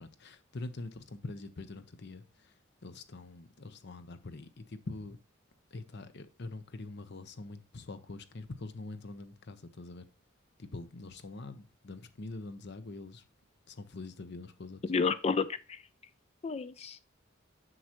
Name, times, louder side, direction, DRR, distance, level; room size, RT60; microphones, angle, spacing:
voice 1, 0.0-2.5 2.8-5.2 5.7-10.1 10.6-13.3 13.7-14.8, left 2 dB, 55° left, 0.8 m, -44 dB
voice 2, 14.9-15.8 16.4-17.1, left 5 dB, 30° left, 0.4 m, -31 dB
7.8 x 6.4 x 3.0 m
head